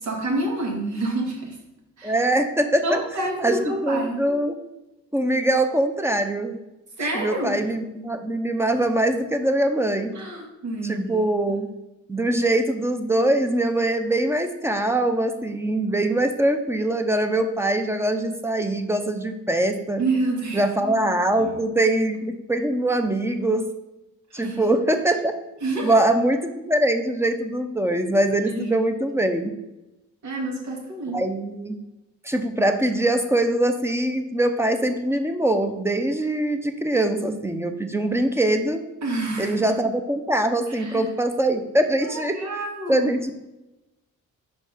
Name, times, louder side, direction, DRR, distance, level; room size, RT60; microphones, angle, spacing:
voice 1, 0.0-1.6 2.0-2.2 2.8-4.2 7.0-7.6 10.2-11.2 20.0-20.6 21.4-21.5 24.3-24.6 25.6-26.0 28.5-28.8 30.2-31.2 39.0-39.5 40.8-41.1 42.0-43.1, right 2 dB, 75° right, 0 dB, 2.1 m, -28 dB
voice 2, 2.0-3.0 3.4-4.6 5.1-6.6 7.1-10.2 10.8-11.7 12.1-20.1 20.5-23.7 24.3-25.3 25.8-29.5 31.1-31.8 32.2-38.8 39.4-42.6 42.9-43.4, right 1 dB, 10° right, 6 dB, 0.7 m, -23 dB
5.3 x 4.4 x 5.6 m, 0.97 s
cardioid pair, 90°, 30 cm